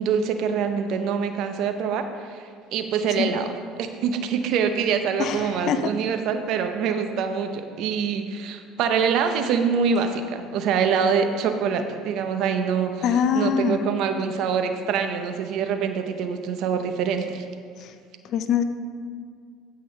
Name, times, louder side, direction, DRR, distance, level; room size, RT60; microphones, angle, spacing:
voice 1, 0.0-2.4 2.7-13.0 13.3-17.4, right 6 dB, 65° right, 7 dB, 0.7 m, -25 dB
voice 2, 5.2-5.9 13.0-13.8 17.8-17.9 18.3-18.6, left 7 dB, 60° left, 10 dB, 0.6 m, -23 dB
14.5 x 6.1 x 3.2 m, 2.1 s
hypercardioid pair, 80°, 0 cm